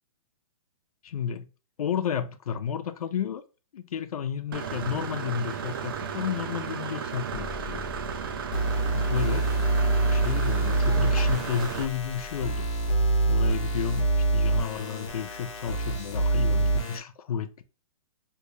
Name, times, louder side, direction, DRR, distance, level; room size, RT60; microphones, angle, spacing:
voice 1, 1.0-1.5 1.8-3.4 3.7-7.9 8.3-8.5 8.9-9.5 10.1-12.7 13.3-14.1 14.3-17.6, left 8 dB, 80° left, 0.5 m, -32 dB
Engine / Mechanisms, 4.5-11.8, right 7 dB, 40° right, 0.4 m, -34 dB
sound 1, 7.3-14.8, left 3 dB, 25° right, 1.1 m, -45 dB
sound 2, 8.5-17.0, right 2 dB, 50° left, 1.0 m, -25 dB
3.4 x 2.6 x 3.0 m
hypercardioid pair, 170°, 18 cm